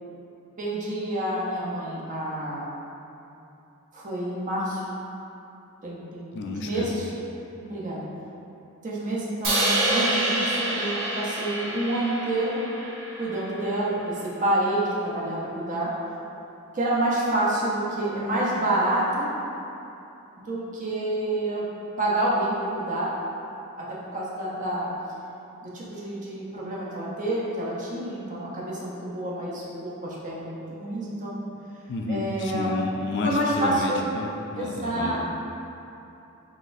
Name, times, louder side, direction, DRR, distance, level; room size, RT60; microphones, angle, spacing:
voice 1, 0.6-2.7 3.9-4.8 5.8-7.1 7.6-8.1 8.8-12.6 13.2-15.9 16.7-19.3 20.4-21.7 22.0-23.1 23.8-24.9 25.6-31.4 32.1-32.7 33.2-34.0 34.6-35.2, right 1 dB, 35° right, -6 dB, 0.6 m, -28 dB
voice 2, 6.3-7.0 31.9-34.3 34.5-35.2, left 2 dB, 50° left, 1 dB, 0.3 m, -31 dB
Crash cymbal, 9.4-13.6, right 1 dB, 60° right, 0.9 m, -27 dB
4.0 x 3.5 x 2.5 m, 2.9 s
head